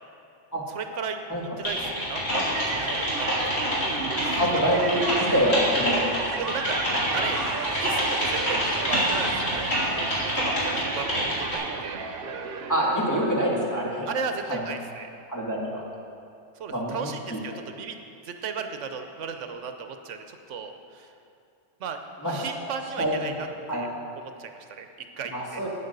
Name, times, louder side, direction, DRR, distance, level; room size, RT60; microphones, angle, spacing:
voice 1, 0.7-1.2 1.6-3.8 4.2-4.5 6.4-6.7 7.1-7.4 7.8-9.5 9.9-12.1 14.1-15.1 16.6-18.0 18.2-21.1 21.8-22.0 22.3-23.5 23.7-23.9 24.2-24.9 25.2-25.6, right 6 dB, 85° right, 7 dB, 1.0 m, -35 dB
Typing, 1.6-11.6, equal, 65° left, 3.2 m, -27 dB
sound 1, 2.5-13.7, right 6 dB, 60° right, 0.8 m, -34 dB
voice 2, 4.4-6.3 12.7-14.1 14.5-14.6 15.3-15.8 16.7-17.4 22.2-22.4 23.0-23.4 23.7-23.8 25.3-25.7, equal, 15° left, -5 dB, 2.0 m, -26 dB
8.8 x 8.5 x 6.6 m, 2.5 s
omnidirectional pair, 1.2 m